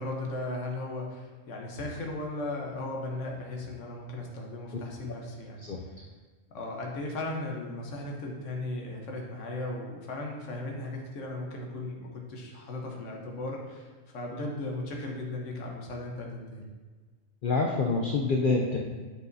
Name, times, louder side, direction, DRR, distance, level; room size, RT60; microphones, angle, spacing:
voice 1, 0.0-6.0 6.5-16.7, left 2 dB, 75° left, 0 dB, 1.3 m, -37 dB
voice 2, 17.4-18.8, left 3 dB, 55° left, 0 dB, 0.6 m, -26 dB
9.2 x 4.9 x 2.7 m, 1.4 s
omnidirectional pair, 1.3 m